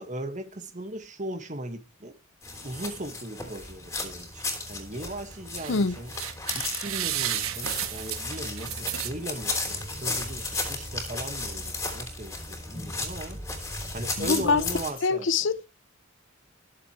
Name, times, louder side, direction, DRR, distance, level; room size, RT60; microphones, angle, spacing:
voice 1, 0.0-2.2 2.6-6.1 6.5-13.4 13.9-15.3, right 1 dB, 35° right, 1.8 m, -38 dB
sound 1, 2.4-14.9, left 2 dB, 15° left, 3.4 m, -35 dB
sound 2, 5.3-5.8 6.1-9.5 10.0-10.1 10.4-10.5, right 10 dB, 85° right, 1.5 m, -32 dB
voice 2, 14.2-14.6 15.0-15.7, left 4 dB, 60° left, 0.6 m, -24 dB
20.5 x 7.5 x 3.2 m
head